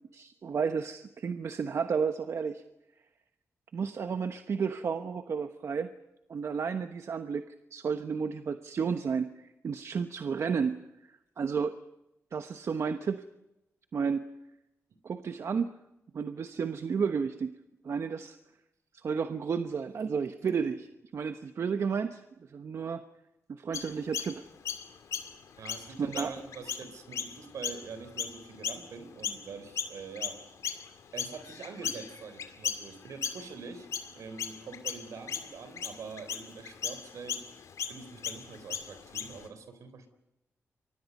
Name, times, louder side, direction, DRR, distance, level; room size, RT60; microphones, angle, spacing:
voice 1, 0.1-2.6 3.7-5.9 6.3-7.4 7.7-10.8 11.4-11.8 12.3-13.2 13.9-14.2 15.0-15.7 16.1-17.5 17.8-18.4 19.0-22.2 22.5-23.0 23.5-24.4 26.0-26.3, right 6 dB, 60° right, 8 dB, 1.1 m, -32 dB
Chirp tweet, 23.7-29.5 29.8-39.5, left 7 dB, 85° left, 2.3 m, -37 dB
voice 2, 25.6-30.4 31.1-33.9 34.1-37.4 37.9-40.1, right 5 dB, 80° right, 10 dB, 3.9 m, -44 dB
29.0 x 24.5 x 5.5 m, 0.91 s
cardioid pair, 75°, 5 cm